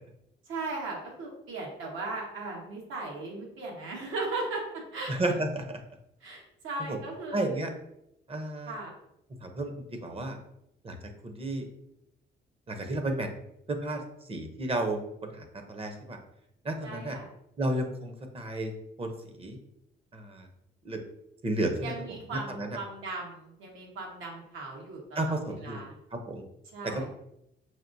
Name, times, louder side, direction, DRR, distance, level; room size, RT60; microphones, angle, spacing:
voice 1, 0.5-5.1 6.2-7.6 8.7-8.9 16.8-17.3 21.8-26.0 26.7-27.0, right 3 dB, 85° right, -1 dB, 1.4 m, -37 dB
voice 2, 5.1-5.8 6.9-7.0 7.3-7.7 8.3-8.8 9.4-10.4 10.8-11.0 11.2-11.7 12.7-13.3 13.7-14.0 14.3-16.2 16.6-17.2 17.6-18.7 19.0-19.1 19.4-19.6 20.1-20.5 20.8-21.0 21.4-21.9 22.3-22.8 25.1-25.8 26.1-26.4 26.8-27.0, right 1 dB, 30° right, 5 dB, 0.7 m, -32 dB
5.7 x 2.5 x 2.6 m, 0.80 s
cardioid pair, 90°, 20 cm